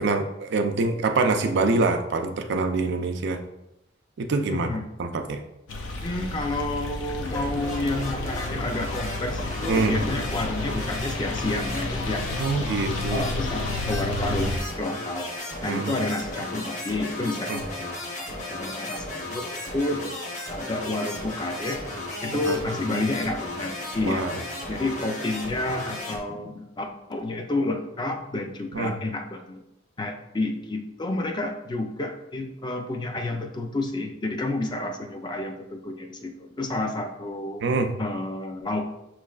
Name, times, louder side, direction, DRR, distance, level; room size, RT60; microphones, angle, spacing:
voice 1, 0.0-3.4 4.2-4.7 5.0-5.4 9.7-10.0 12.3-13.3 15.6-16.0 17.5-17.6 22.3-22.6 22.9-23.0 24.0-24.4 28.7-28.9 37.6-37.9, right 3 dB, 65° right, 6 dB, 0.4 m, -25 dB
voice 2, 4.5-4.8 6.0-12.7 13.1-15.3 15.6-20.1 20.5-21.8 22.2-24.4 24.7-29.6 30.0-37.6 38.0-38.8, left 2 dB, 25° left, 4 dB, 0.4 m, -30 dB
sound 1, 5.7-14.6, left 2 dB, 85° left, 0.6 m, -32 dB
sound 2, 7.2-26.2, left 1 dB, 40° left, 0.9 m, -35 dB
5.9 x 3.1 x 2.4 m, 0.88 s
head